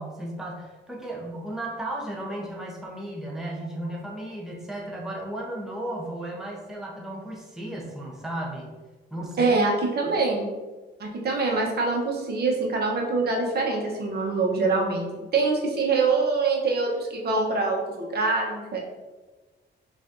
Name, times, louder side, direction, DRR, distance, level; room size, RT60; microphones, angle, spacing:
voice 1, 0.0-8.7 9.1-9.5, right 1 dB, ahead, -2 dB, 0.8 m, -34 dB
voice 2, 9.4-10.4 11.0-15.1 15.3-18.8, right 3 dB, 55° right, -1 dB, 1.0 m, -24 dB
5.6 x 2.6 x 2.6 m, 1.3 s
cardioid pair, 90°, 20 cm